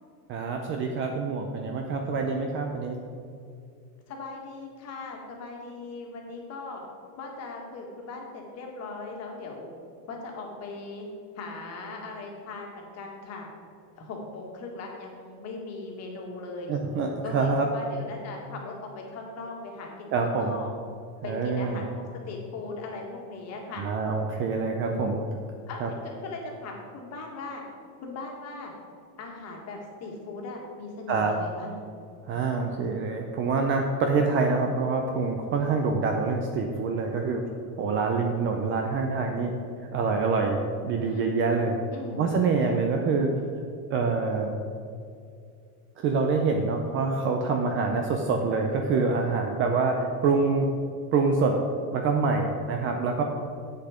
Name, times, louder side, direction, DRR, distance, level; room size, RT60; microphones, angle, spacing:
voice 1, 0.3-3.0 16.7-17.7 20.1-20.5 21.2-21.8 23.8-25.2 25.8-25.9 31.1-31.3 32.3-37.4 37.8-39.5 39.9-41.8 42.2-43.3 43.9-44.5 46.0-50.7 51.1-51.6 51.9-53.2, right 4 dB, 30° right, 3 dB, 0.5 m, -26 dB
voice 2, 4.1-6.8 7.2-9.7 10.1-11.1 11.3-13.5 14.0-16.7 17.2-20.7 21.2-23.8 24.8-25.1 25.7-27.6 28.0-28.7 29.2-31.8 41.0-41.3 41.9-42.2, left 3 dB, 35° left, 0 dB, 1.7 m, -39 dB
8.1 x 6.7 x 5.0 m, 2.4 s
supercardioid pair, 155°, 46 cm